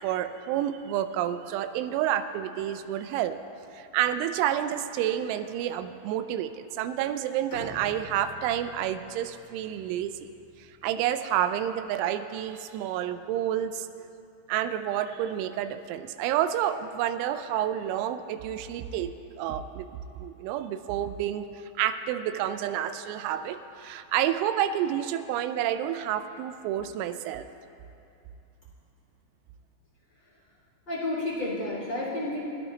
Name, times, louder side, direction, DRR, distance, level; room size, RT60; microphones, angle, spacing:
voice 1, 0.0-3.4 3.7-10.3 10.8-13.9 14.5-19.9 20.2-21.5 21.8-27.5, right 11 dB, 85° right, 10 dB, 3.0 m, -29 dB
Bowed string instrument, 7.5-11.4, left 1 dB, 80° left, 6.1 m, -47 dB
voice 2, 30.8-32.4, left 2 dB, 20° left, -10 dB, 1.6 m, -31 dB
21.0 x 12.0 x 3.2 m, 2.7 s
omnidirectional pair, 5.4 m